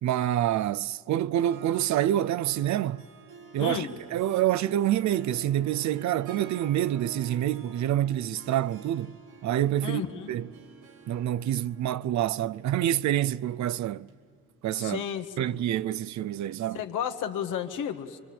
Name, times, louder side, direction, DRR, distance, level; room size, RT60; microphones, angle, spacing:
voice 1, 0.0-3.0 3.5-9.2 9.4-10.0 10.3-10.5 11.1-14.1 14.6-15.0 15.4-16.8, right 12 dB, 70° right, 0.6 m, -27 dB
Harp, 1.4-14.9, right 6 dB, 85° right, 2.5 m, -48 dB
voice 2, 3.6-3.9 9.8-10.3 14.8-15.6 16.7-18.2, left 8 dB, 85° left, 1.7 m, -33 dB
26.0 x 24.5 x 8.7 m
cardioid pair, 90°, 30 cm